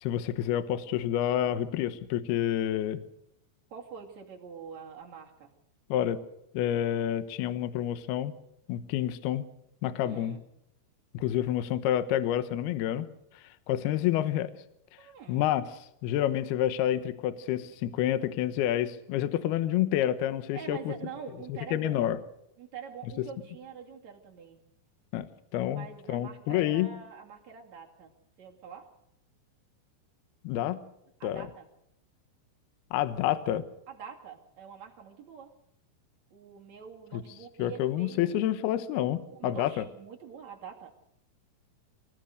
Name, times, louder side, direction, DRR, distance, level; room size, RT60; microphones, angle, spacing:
voice 1, 0.0-3.0 5.9-6.2 6.5-8.3 8.7-9.4 9.8-10.4 11.1-13.1 13.7-14.5 15.3-15.6 16.0-20.9 21.5-22.2 25.1-25.3 25.5-26.9 30.4-30.8 31.2-31.5 32.9-33.6 37.1-37.2 37.6-39.8, left 12 dB, 75° left, 12 dB, 2.4 m, -28 dB
voice 2, 3.7-5.5 9.9-10.4 15.0-15.5 20.5-22.2 22.6-24.6 25.7-28.9 31.2-31.7 33.9-35.5 36.3-38.4 39.3-40.9, right 6 dB, 45° right, 0 dB, 2.8 m, -45 dB
24.5 x 16.5 x 6.6 m, 0.78 s
omnidirectional pair, 5.9 m